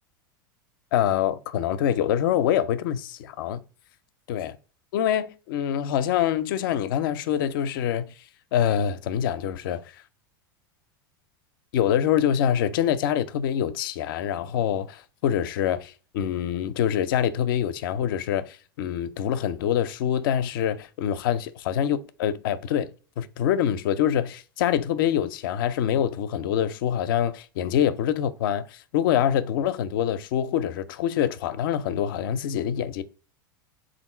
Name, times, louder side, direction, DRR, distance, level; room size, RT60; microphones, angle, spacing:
voice 1, 0.9-3.6 4.3-4.5 4.9-8.1 8.5-9.8 11.7-22.9 23.2-33.0, left 9 dB, 70° left, 0.4 m, -25 dB
3.6 x 2.5 x 4.1 m
hypercardioid pair, 100°, 12 cm